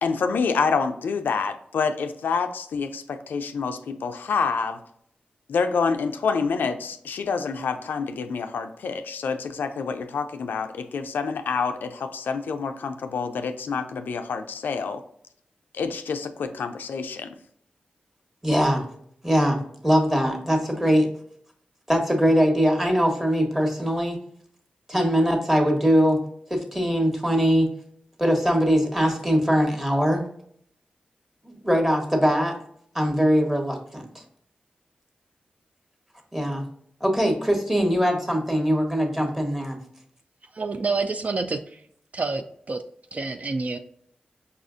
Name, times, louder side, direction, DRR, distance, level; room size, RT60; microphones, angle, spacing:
voice 1, 0.0-4.8 5.5-15.0 15.7-17.3, left 5 dB, 85° left, 8 dB, 0.3 m, -27 dB
voice 2, 18.4-18.9 19.2-21.1 21.9-24.2 24.9-26.2 26.5-27.7 28.2-30.3 31.4-32.6 32.9-34.1 36.3-36.7 37.0-39.8, equal, 10° right, 2 dB, 1.1 m, -22 dB
voice 3, 40.5-41.8 42.1-42.8 43.1-43.8, right 3 dB, 50° right, 8 dB, 0.3 m, -28 dB
5.3 x 2.4 x 2.5 m, 0.66 s
cardioid pair, 45°, 3 cm